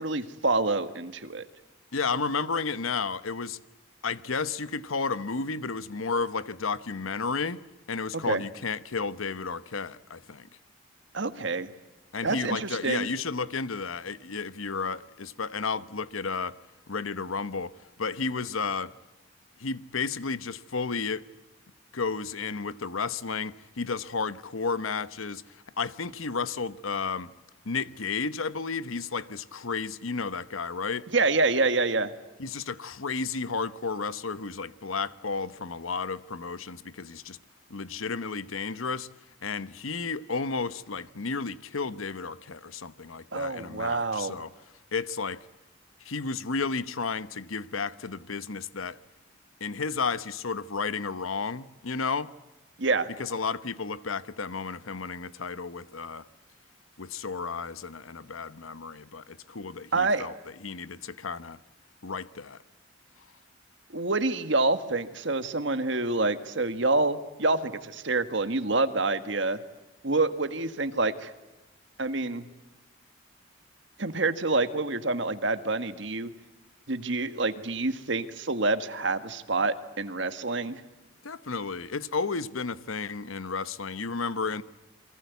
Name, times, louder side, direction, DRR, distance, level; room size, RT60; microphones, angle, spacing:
voice 1, 0.0-1.5 8.2-8.4 11.1-11.7 12.2-13.1 31.1-32.1 43.3-44.4 52.8-53.1 59.9-60.3 63.9-69.6 70.0-71.3 72.0-72.5 74.0-76.3 76.9-80.8, right 3 dB, 65° right, 1.6 m, -27 dB
voice 2, 1.9-3.6 4.0-7.6 7.9-10.5 12.1-16.6 16.9-17.7 18.0-18.9 19.6-21.3 21.9-25.4 25.8-27.3 27.6-31.1 32.4-37.4 37.7-39.1 39.4-44.5 44.9-45.5 46.0-49.0 49.6-52.3 53.2-56.2 57.0-60.3 60.6-61.6 62.0-62.6 81.2-84.6, left 4 dB, 90° left, 1.0 m, -32 dB
29.0 x 23.0 x 8.3 m
head